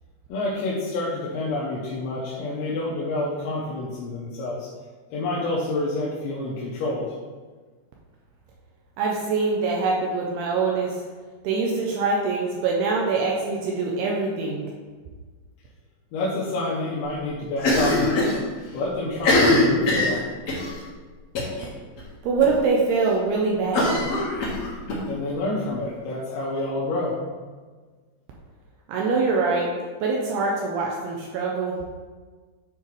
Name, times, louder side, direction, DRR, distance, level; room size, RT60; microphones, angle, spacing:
voice 1, 0.3-4.7 5.1-7.2 16.1-18.3 18.7-20.2 25.1-27.2, left 2 dB, 80° left, -6 dB, 3.1 m, -28 dB
voice 2, 9.0-11.0 11.4-14.7 22.2-24.1 28.9-29.7 30.0-31.8, right 4 dB, 90° right, -2 dB, 2.4 m, -24 dB
Cough, 17.6-18.4 18.7-18.8 19.1-20.7 21.4-21.7 22.0-22.1 22.4-22.5 23.7-25.0, left 2 dB, 65° left, 1.7 m, -21 dB
9.8 x 4.6 x 3.2 m, 1.4 s
omnidirectional pair, 5.3 m